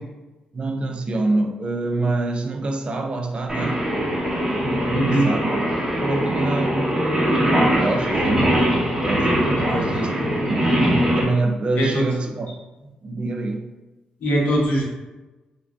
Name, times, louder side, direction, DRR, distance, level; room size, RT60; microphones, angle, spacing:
voice 1, 0.5-3.9 4.5-5.6 6.0-8.5 9.0-9.3 9.8-10.7 11.1-12.6 13.0-13.7, right 2 dB, 40° right, 4 dB, 0.3 m, -26 dB
Singing, 3.5-11.2, equal, 15° right, 0.8 m, -21 dB
voice 2, 4.9-5.3 9.6-9.9 11.7-12.1 14.2-14.8, right 1 dB, 65° left, -4 dB, 1.0 m, -21 dB
3.2 x 2.4 x 2.3 m, 1.1 s
cardioid pair, 80°, 3 cm